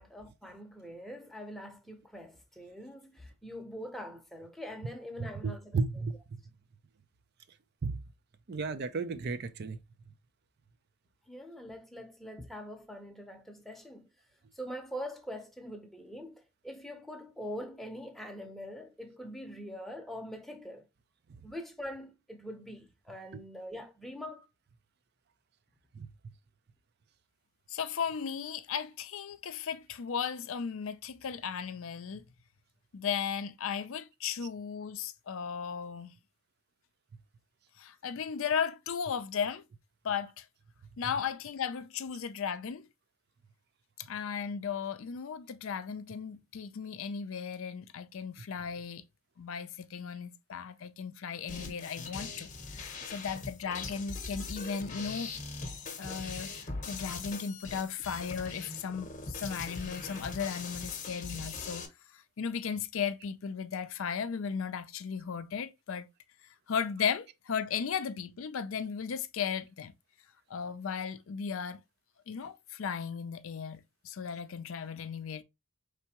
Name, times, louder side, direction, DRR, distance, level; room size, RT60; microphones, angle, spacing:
voice 1, 0.0-6.0 11.3-14.1 14.5-20.9 21.4-24.4, equal, ahead, 0.7 m, -43 dB
voice 2, 5.2-6.4 7.8-8.0 8.5-9.8 26.0-26.1, right 4 dB, 45° right, 0.4 m, -34 dB
voice 3, 27.7-32.2 32.9-36.1 37.8-39.6 40.0-40.5 41.0-42.9 44.0-49.0 49.4-55.3 56.0-61.8 62.1-66.1 66.7-69.9 70.5-71.8 72.3-75.4, left 7 dB, 65° left, 0.4 m, -36 dB
sound 1, 51.5-61.9, left 3 dB, 35° left, 0.9 m, -41 dB
4.5 x 3.3 x 2.9 m
head